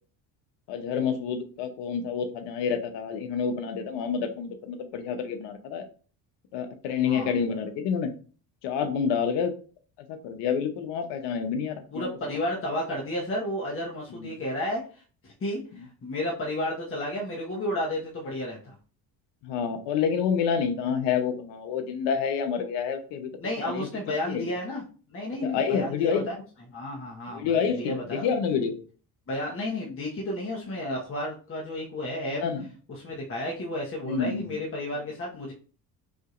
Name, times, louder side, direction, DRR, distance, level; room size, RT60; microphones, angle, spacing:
voice 1, 0.7-5.8 6.5-8.1 8.6-9.5 10.1-12.1 14.2-14.3 19.4-23.3 23.6-23.9 24.3-24.5 25.4-26.3 27.3-28.7 32.3-32.6 34.0-34.6, left 6 dB, 75° left, 7 dB, 0.9 m, -28 dB
voice 2, 11.9-15.0 15.4-18.7 23.4-26.3 26.7-28.3 29.3-32.4 32.9-35.5, left 1 dB, 30° left, -3 dB, 1.3 m, -32 dB
6.1 x 2.9 x 2.5 m, 0.39 s
supercardioid pair, 85°, 43 cm